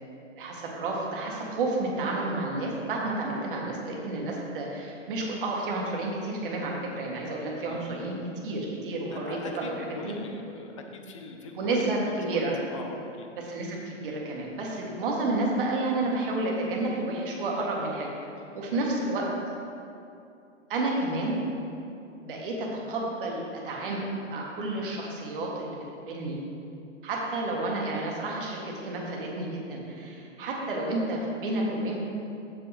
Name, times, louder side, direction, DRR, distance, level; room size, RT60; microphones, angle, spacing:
voice 1, 0.4-8.1 8.4-10.1 11.5-12.6 13.4-18.1 18.5-19.3 20.7-21.4 22.2-25.8 26.1-26.4 27.0-32.0, right 2 dB, 45° right, -2 dB, 1.6 m, -30 dB
voice 2, 9.1-13.3 18.7-18.9, left 3 dB, 25° left, 3 dB, 0.5 m, -42 dB
7.4 x 7.3 x 3.4 m, 2.7 s
hypercardioid pair, 150°, 38 cm